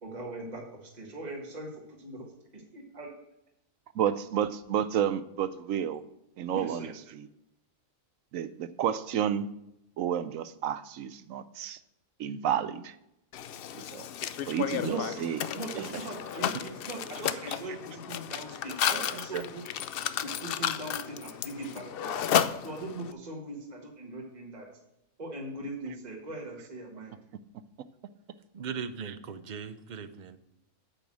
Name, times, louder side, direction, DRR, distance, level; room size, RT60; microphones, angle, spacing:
voice 1, 0.0-2.3 2.5-3.1 6.5-6.9 14.8-15.0 15.5-19.7 20.2-24.7 25.2-27.2, right 1 dB, 30° right, -1 dB, 1.8 m, -40 dB
voice 2, 3.9-6.0 6.4-7.3 8.3-9.5 10.0-11.8 12.2-12.9 13.8-14.1 14.5-15.4 15.8-16.0 17.5-17.8 18.9-19.5 29.1-29.2, right 9 dB, 75° right, 13 dB, 1.0 m, -31 dB
Mechanisms, 13.3-23.1, left 9 dB, 70° left, 0.5 m, -33 dB
voice 3, 28.5-30.4, right 6 dB, 50° right, 11 dB, 0.5 m, -39 dB
8.7 x 7.0 x 6.1 m, 0.84 s
omnidirectional pair, 1.5 m